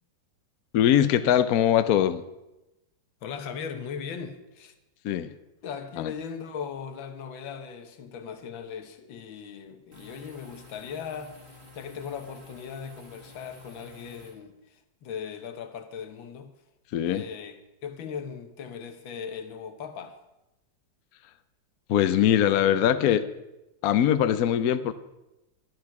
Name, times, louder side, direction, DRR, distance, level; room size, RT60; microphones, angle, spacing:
voice 1, 0.7-2.2 5.0-5.3 6.0-6.1 16.9-17.2 21.9-23.3 23.8-24.9, left 10 dB, 65° left, 1.0 m, -22 dB
voice 2, 3.2-4.7 5.6-16.5 17.1-20.2, left 7 dB, 85° left, 1.8 m, -38 dB
sound 1, 9.9-14.3, left 2 dB, 30° right, 3.5 m, -50 dB
11.5 x 10.5 x 5.9 m
omnidirectional pair, 2.1 m